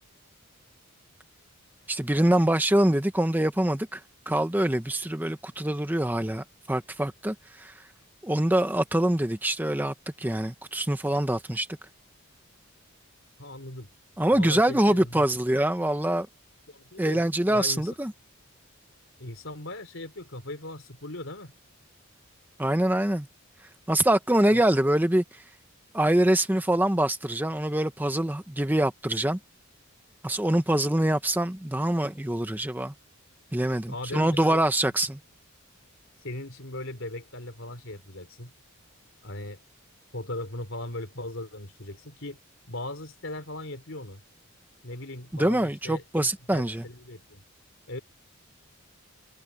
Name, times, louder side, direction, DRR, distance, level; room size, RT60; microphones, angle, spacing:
voice 1, 1.9-4.0 4.3-7.7 8.2-11.7 14.2-16.3 17.0-18.1 22.6-23.3 23.9-25.4 25.9-29.4 30.2-32.9 33.5-35.2 45.3-46.8, right 1 dB, 10° right, 0.8 m, -24 dB
voice 2, 13.4-13.9 14.3-15.2 16.7-17.2 17.5-17.9 19.2-21.5 24.5-24.6 33.9-34.9 36.2-38.5 39.2-39.6 40.1-42.4 42.7-44.2 44.8-47.4 47.9-48.0, left 1 dB, 60° left, 4.0 m, -38 dB
head